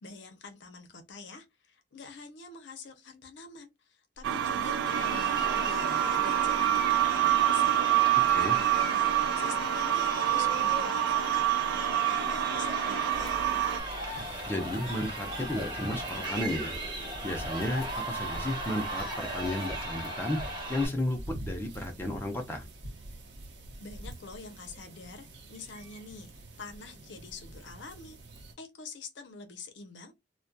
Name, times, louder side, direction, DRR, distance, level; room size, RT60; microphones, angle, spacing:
voice 1, 0.0-7.8 8.1-11.5 11.8-13.4 23.8-28.2 28.6-30.1, left 4 dB, 75° left, 0.6 m, -46 dB
sound 1, 4.2-13.8, right 12 dB, 85° right, 0.3 m, -27 dB
Crowd, 4.8-20.9, right 1 dB, 25° right, 0.8 m, -36 dB
sound 2, 13.1-28.5, right 1 dB, 70° right, 0.7 m, -46 dB
voice 2, 14.1-16.8 17.2-20.4 20.7-22.7, left 1 dB, 15° left, 0.5 m, -33 dB
2.2 x 2.2 x 2.6 m
head